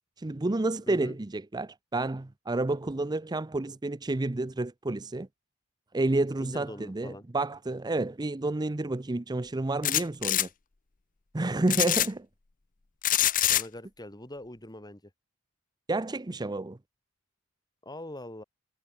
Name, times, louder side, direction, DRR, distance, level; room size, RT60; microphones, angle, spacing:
voice 1, 0.2-5.3 5.9-10.5 11.3-12.3 15.9-16.8, right 2 dB, 20° right, 0.6 m, -30 dB
voice 2, 0.9-1.2 6.4-7.3 13.5-15.0 17.8-18.4, left 1 dB, 20° left, 5.1 m, -43 dB
sound 1, 9.8-10.5 11.7-12.1 13.0-13.6, left 12 dB, 40° left, 0.8 m, -24 dB
head